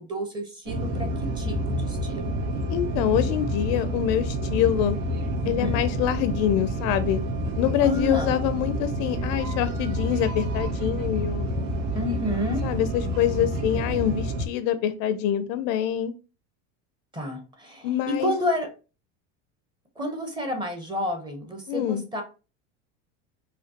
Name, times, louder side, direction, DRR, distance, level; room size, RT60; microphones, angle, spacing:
voice 1, 0.0-2.4 5.4-5.8 7.8-8.4 11.9-12.7 17.1-18.7 20.0-22.2, left 1 dB, 10° right, 4 dB, 0.7 m, -30 dB
sound 1, 0.7-14.5, equal, 80° right, 1.8 m, -28 dB
voice 2, 2.7-5.0 5.5-7.2 7.6-11.5 12.6-16.1 17.8-18.3 21.7-22.0, left 11 dB, 55° left, 12 dB, 0.5 m, -25 dB
5.0 x 2.7 x 2.8 m, 0.33 s
supercardioid pair, 155°, 36 cm